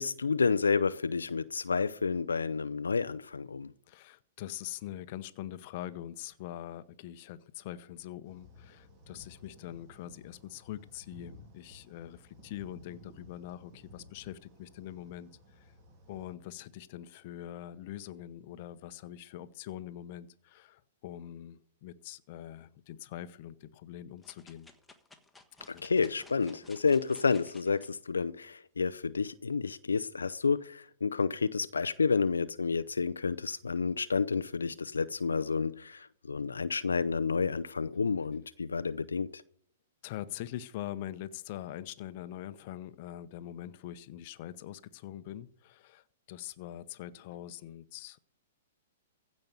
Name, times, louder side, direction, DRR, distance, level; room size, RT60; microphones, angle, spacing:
voice 1, 0.0-3.7 25.8-39.4, left 5 dB, 85° left, 0.5 m, -30 dB
voice 2, 3.9-15.7 16.1-24.7 25.7-25.8 40.0-48.2, left 12 dB, 50° left, 0.8 m, -43 dB
sound 1, 8.2-16.4, left 1 dB, 35° right, 3.8 m, -56 dB
sound 2, 24.2-27.9 28.4-28.5, left 3 dB, 5° left, 1.4 m, -57 dB
15.5 x 5.3 x 8.0 m
hypercardioid pair, 115°, 0 cm